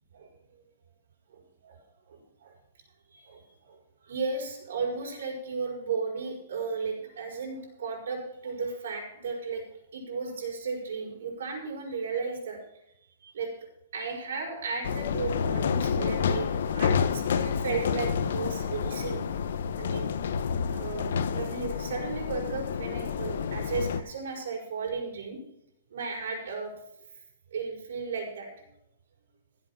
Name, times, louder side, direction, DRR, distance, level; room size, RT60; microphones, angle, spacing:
voice 1, 1.3-1.8 2.1-2.5 3.1-3.8 4.0-9.6 9.9-12.6 13.2-13.5 13.9-19.3 19.8-20.2 20.7-25.4 25.9-26.7 27.5-28.6, right 4 dB, 75° right, 1 dB, 5.1 m, -35 dB
sound 1, 14.8-24.0, left 6 dB, 70° left, 1.0 m, -29 dB
16.5 x 7.9 x 5.7 m, 0.80 s
hypercardioid pair, 165°, 0 cm